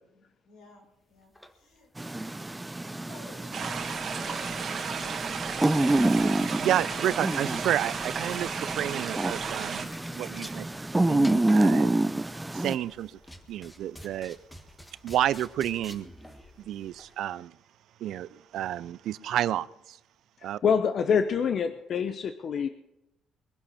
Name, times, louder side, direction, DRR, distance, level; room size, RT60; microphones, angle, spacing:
voice 1, 0.1-2.4 2.8-5.3, left 2 dB, 80° left, 5.2 m, -52 dB
sound 1, 1.2-17.2, equal, 10° left, 1.6 m, -49 dB
sound 2, 2.0-12.8, right 2 dB, 10° right, 0.6 m, -28 dB
sound 3, 3.5-9.8, right 6 dB, 50° right, 2.0 m, -34 dB
voice 2, 6.6-10.7 11.1-11.9 12.5-13.2 13.5-14.4 15.0-16.1 16.6-17.6 18.0-20.0 20.4-20.6, right 12 dB, 70° right, 0.5 m, -30 dB
voice 3, 20.4-22.7, left 6 dB, 50° left, 0.9 m, -26 dB
22.0 x 11.5 x 4.3 m
cardioid pair, 110°, 0 cm